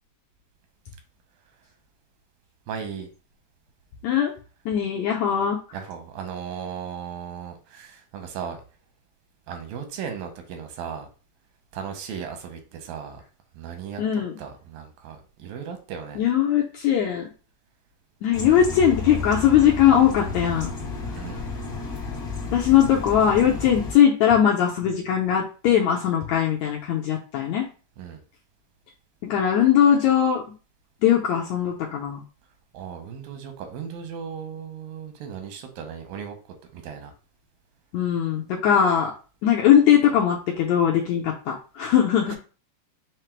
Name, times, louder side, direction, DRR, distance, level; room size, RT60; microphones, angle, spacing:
voice 1, 2.7-3.1 5.7-8.6 9.5-11.1 11.7-13.2 13.5-14.0 14.4-16.2 21.1-21.4 28.0-28.2 32.7-36.4 36.7-37.1 42.3-42.4, right 7 dB, 90° right, 5 dB, 2.6 m, -36 dB
voice 2, 4.6-5.6 14.0-14.3 16.2-17.3 18.2-20.7 22.5-27.6 29.2-30.4 31.0-32.2 37.9-39.1 39.4-42.4, left 9 dB, 80° left, -2 dB, 1.7 m, -20 dB
sound 1, 18.3-23.9, left 3 dB, 5° left, 0.6 m, -32 dB
5.7 x 2.0 x 4.4 m, 0.36 s
omnidirectional pair, 3.9 m